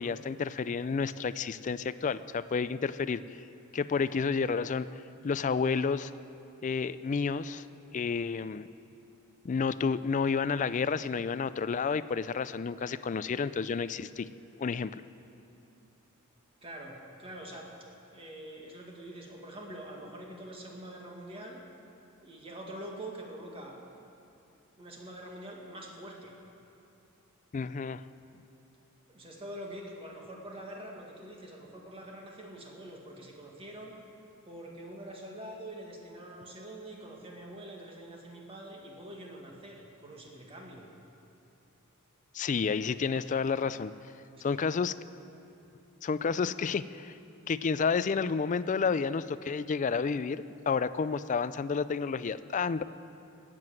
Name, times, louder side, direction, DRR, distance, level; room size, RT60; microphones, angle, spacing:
voice 1, 0.0-3.4 3.7-4.9 5.2-6.1 6.6-7.6 7.9-8.7 9.4-14.3 14.6-15.0 27.5-28.0 42.3-43.9 44.4-44.9 46.0-47.1 47.5-52.9, left 5 dB, 35° left, 15 dB, 0.3 m, -30 dB
voice 2, 16.6-17.7 18.1-21.6 22.2-23.8 24.8-26.3 29.1-34.0 34.5-40.9 44.3-44.6, right 1 dB, 25° right, -1 dB, 2.0 m, -45 dB
18.5 x 7.6 x 7.5 m, 2.7 s
head